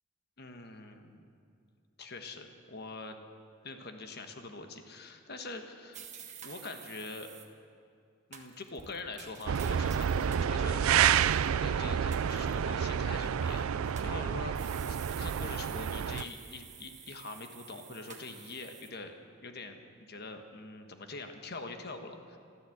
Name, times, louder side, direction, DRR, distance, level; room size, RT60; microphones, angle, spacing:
voice 1, 0.4-1.2 2.0-3.2 3.6-6.0 6.4-7.3 8.3-11.2 11.6-13.7 14.0-22.4, left 3 dB, 50° left, 6 dB, 1.3 m, -44 dB
sound 1, 5.9-7.5 8.3-10.5 10.9-11.5 12.1-12.6 13.5-14.1 14.5-18.9, right 8 dB, 35° right, 1.3 m, -50 dB
sound 2, 9.5-16.2, right 8 dB, 90° right, 0.4 m, -29 dB
14.5 x 13.0 x 7.8 m, 2.4 s
head